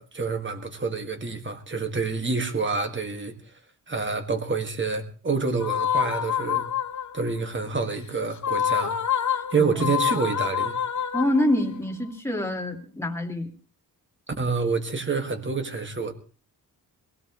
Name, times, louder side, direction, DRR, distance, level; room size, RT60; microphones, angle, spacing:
voice 1, 0.0-3.3 3.9-6.7 7.1-9.0 9.5-10.7 14.3-16.1, right 4 dB, 30° right, 6 dB, 2.0 m, -27 dB
sound 1, 5.6-7.3 8.4-11.8, left 8 dB, 50° left, 1.2 m, -27 dB
voice 2, 9.6-9.9 11.1-13.5, left 1 dB, 5° left, 1 dB, 2.5 m, -26 dB
22.5 x 16.5 x 3.1 m, 0.37 s
wide cardioid pair, 125°, 38 cm